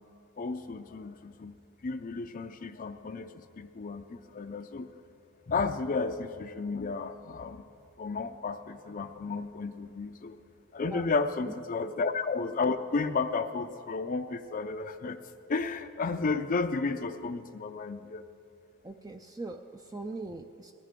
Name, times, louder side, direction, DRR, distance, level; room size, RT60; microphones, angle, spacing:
voice 1, 0.4-1.6 1.8-4.9 5.5-7.7 8.0-10.4 10.7-15.2 15.5-18.3, left 4 dB, 40° left, 8 dB, 0.5 m, -33 dB
voice 2, 18.8-20.7, right 2 dB, 15° right, 5 dB, 0.4 m, -40 dB
19.0 x 15.0 x 3.7 m, 2.4 s
head